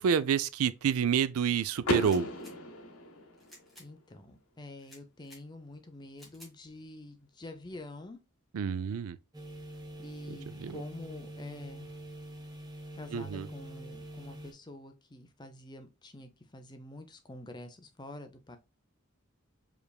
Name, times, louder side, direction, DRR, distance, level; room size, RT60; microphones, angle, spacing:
voice 1, 0.0-2.3 8.5-9.2 10.3-10.8 13.1-13.5, right 7 dB, 85° right, 0.4 m, -29 dB
Car / Door, 1.8-3.8, left 1 dB, 85° left, 1.0 m, -35 dB
sound 1, 2.0-2.5 3.4-3.9 4.8-5.4 6.2-6.5, left 1 dB, ahead, 1.4 m, -55 dB
voice 2, 3.8-8.2 10.0-11.9 13.0-18.6, left 2 dB, 20° left, 0.6 m, -47 dB
sound 2, 9.3-14.5, equal, 20° right, 0.9 m, -45 dB
4.8 x 3.4 x 2.3 m
head